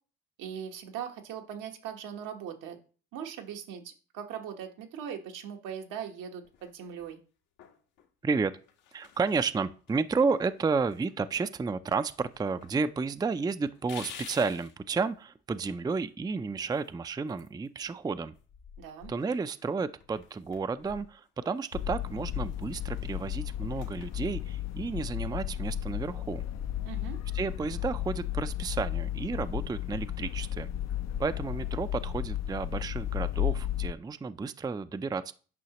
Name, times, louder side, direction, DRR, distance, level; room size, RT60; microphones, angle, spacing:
voice 1, 0.4-2.8 3.1-7.2 18.8-19.1 26.8-27.2, right 8 dB, 75° right, 5 dB, 1.3 m, -40 dB
sound 1, 6.4-7.1 7.6-8.1 8.6-9.5 9.9-10.0 10.3-11.6 11.9-12.8 13.0-13.1 13.6-14.8 16.6-18.0 18.3-21.8 22.2-24.8, left 8 dB, 80° left, 1.4 m, -52 dB
voice 2, 8.9-18.3 19.1-26.4 27.3-30.7 31.2-35.3, right 4 dB, 15° right, 12 dB, 0.4 m, -31 dB
sound 2, 21.7-33.9, left 11 dB, 55° left, 0.6 m, -34 dB
9.4 x 5.5 x 3.0 m, 0.39 s
supercardioid pair, 65°, 32 cm